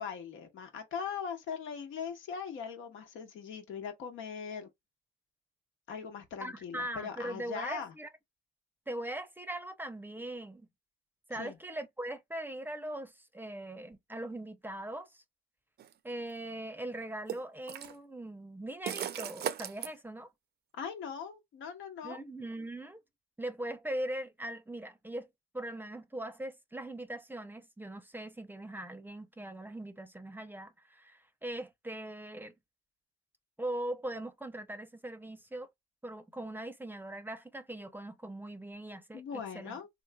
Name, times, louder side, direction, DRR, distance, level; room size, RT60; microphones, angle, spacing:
voice 1, 0.0-4.7 5.9-7.9 11.3-11.5 20.8-22.2 39.1-39.9, left 6 dB, 80° left, 1.2 m, -40 dB
voice 2, 6.4-8.1 8.9-10.7 11.3-15.2 16.0-20.3 22.0-23.0 23.4-25.3 25.5-32.5 33.6-35.7 36.0-39.8, right 1 dB, 10° right, 0.6 m, -40 dB
sound 1, 15.8-15.9 17.3-18.0 18.9-19.9, right 9 dB, 55° right, 0.5 m, -36 dB
3.2 x 3.1 x 2.2 m
cardioid pair, 90°, 20 cm